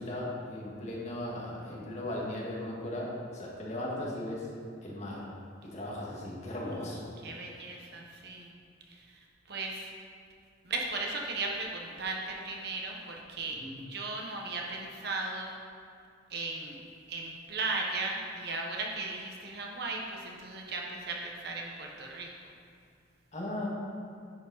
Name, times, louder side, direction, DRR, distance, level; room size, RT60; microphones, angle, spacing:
voice 1, 0.0-4.5 4.8-5.3 5.6-7.1 13.6-13.8 23.3-23.7, left 1 dB, 40° left, -4 dB, 1.9 m, -37 dB
voice 2, 7.2-8.5 8.9-9.2 9.5-9.9 10.6-13.6 13.9-15.5 16.3-16.8 17.1-22.3, right 3 dB, 60° right, 0 dB, 1.2 m, -36 dB
9.9 x 7.2 x 4.1 m, 2.4 s
head